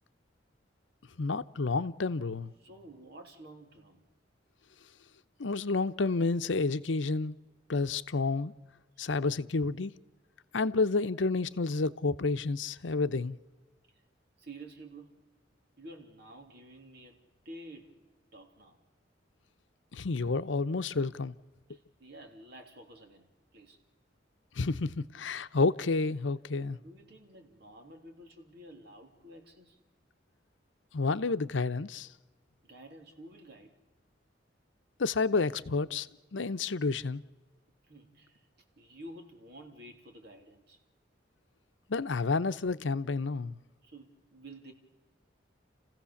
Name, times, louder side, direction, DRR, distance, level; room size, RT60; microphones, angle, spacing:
voice 1, 1.2-2.5 5.4-7.4 7.7-8.5 9.0-9.9 10.5-13.4 19.9-21.3 24.6-26.8 30.9-32.1 35.0-36.1 36.3-37.2 41.9-43.6, left 3 dB, 85° left, 0.7 m, -30 dB
voice 2, 2.6-4.1 13.9-14.0 14.4-15.3 15.8-17.2 17.4-18.0 18.3-18.8 21.7-23.8 26.6-29.8 32.6-33.8 37.8-38.5 38.8-40.8 43.8-44.7, right 1 dB, 60° right, 3.1 m, -51 dB
30.0 x 15.5 x 7.1 m
head